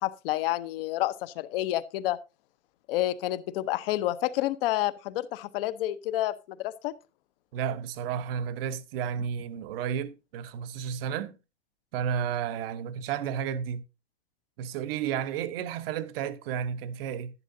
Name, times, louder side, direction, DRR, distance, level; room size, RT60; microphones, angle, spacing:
voice 1, 0.0-2.2 2.9-6.9, left 15 dB, 55° left, 0.8 m, -29 dB
voice 2, 7.5-11.4 11.9-13.8 14.6-17.3, right 8 dB, 55° right, 1.0 m, -32 dB
11.0 x 10.0 x 2.7 m
hypercardioid pair, 130°, 35 cm